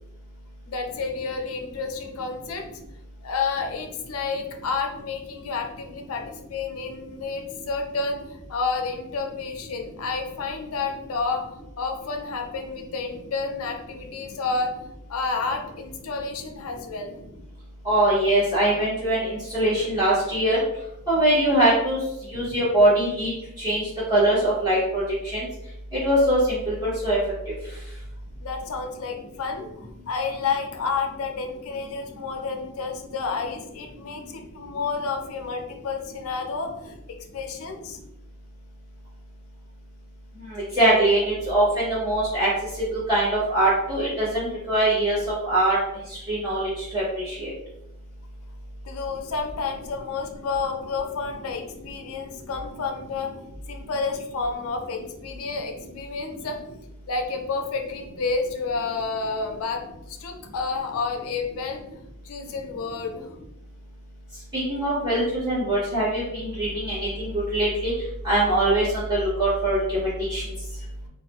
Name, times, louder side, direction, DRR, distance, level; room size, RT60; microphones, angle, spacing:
voice 1, 0.7-2.7 3.2-11.4 11.8-14.7 15.1-17.1 28.4-38.0 48.8-53.3 53.7-56.6 57.1-59.8 60.1-61.8 62.2-63.3, left 4 dB, 75° left, 4 dB, 0.4 m, -30 dB
voice 2, 17.8-20.6 21.1-22.0 22.3-23.3 23.6-23.8 24.1-25.5 25.9-27.2 40.5-42.5 42.9-45.8 46.1-47.5 64.5-67.9 68.2-70.4, right 1 dB, 20° right, -11 dB, 0.8 m, -22 dB
2.4 x 2.1 x 2.8 m, 0.83 s
head